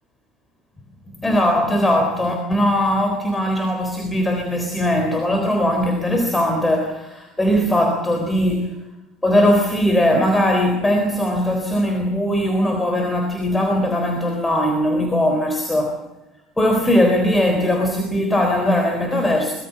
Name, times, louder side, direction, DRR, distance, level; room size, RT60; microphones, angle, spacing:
voice 1, 1.1-8.8 9.2-16.0 16.6-19.5, left 1 dB, 10° left, 4 dB, 3.7 m, -19 dB
24.5 x 20.0 x 7.0 m, 0.94 s
figure-of-eight pair, 65°, 0 cm